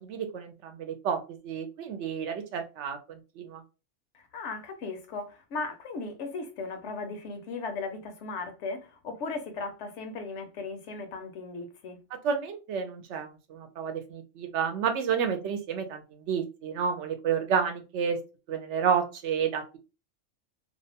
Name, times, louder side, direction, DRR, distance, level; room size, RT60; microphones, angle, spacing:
voice 1, 0.0-1.2 1.4-3.6 12.2-16.0 16.3-18.2 18.5-19.6, right 7 dB, 70° right, 0.8 m, -30 dB
voice 2, 4.1-12.0, left 3 dB, 70° left, 0.9 m, -37 dB
2.6 x 2.1 x 2.7 m
omnidirectional pair, 1.3 m